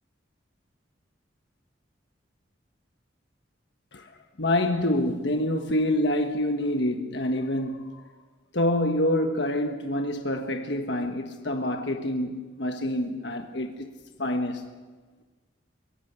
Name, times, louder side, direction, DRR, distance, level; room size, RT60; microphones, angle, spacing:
voice 1, 4.4-8.0 8.5-13.9 14.2-14.6, left 1 dB, 60° left, 1.4 m, -27 dB
23.5 x 18.0 x 8.2 m
head